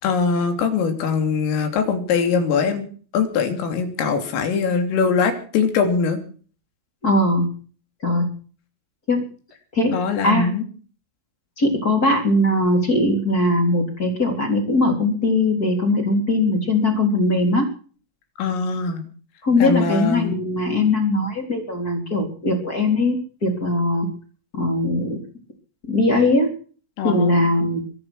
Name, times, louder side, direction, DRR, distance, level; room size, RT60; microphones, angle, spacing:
voice 1, 0.0-2.9 3.1-6.2 9.9-10.7 18.4-19.0 19.6-20.3 27.0-27.3, left 5 dB, 80° left, 6 dB, 5.7 m, -22 dB
voice 2, 7.0-7.5 8.0-8.3 9.1-9.2 9.7-10.0 10.2-10.5 11.6-17.7 19.4-23.2 23.4-24.1 24.5-25.2 25.9-26.5 27.0-27.8, left 2 dB, 20° left, 4 dB, 3.3 m, -20 dB
23.0 x 9.9 x 6.2 m, 0.41 s
omnidirectional pair, 5.8 m